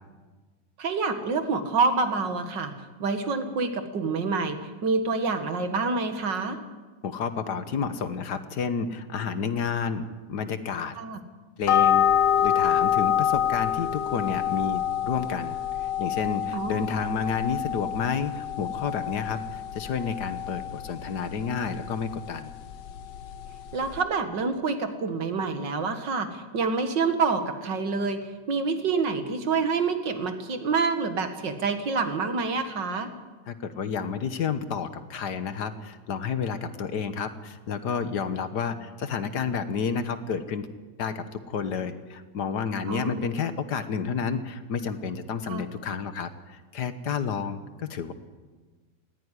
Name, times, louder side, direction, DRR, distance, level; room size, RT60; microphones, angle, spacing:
voice 1, 0.8-6.6 11.0-11.2 16.5-16.9 23.7-33.1 42.9-43.3 45.4-45.6, right 4 dB, 80° right, 7 dB, 2.4 m, -27 dB
voice 2, 7.0-11.0 11.6-12.1 12.4-22.5 33.5-40.7 41.0-48.1, left 6 dB, 70° left, 11 dB, 1.7 m, -30 dB
sound 1, 11.6-24.0, left 10 dB, 85° left, 1.7 m, -27 dB
18.5 x 16.0 x 10.0 m, 1.3 s
omnidirectional pair, 1.9 m